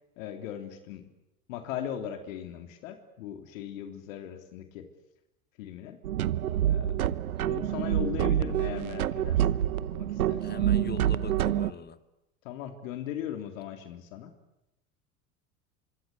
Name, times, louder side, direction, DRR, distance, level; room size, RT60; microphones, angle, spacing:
voice 1, 0.2-1.1 1.5-4.9 5.6-6.0 6.7-7.0 7.4-9.4 9.8-10.4 12.4-14.3, left 10 dB, 65° left, 7 dB, 3.4 m, -38 dB
sound 1, 6.0-11.7, right 11 dB, 80° right, 1.0 m, -27 dB
voice 2, 7.3-7.7 10.4-12.0, left 6 dB, 20° left, 12 dB, 2.3 m, -42 dB
25.5 x 25.0 x 8.4 m, 0.89 s
hypercardioid pair, 80°, 43 cm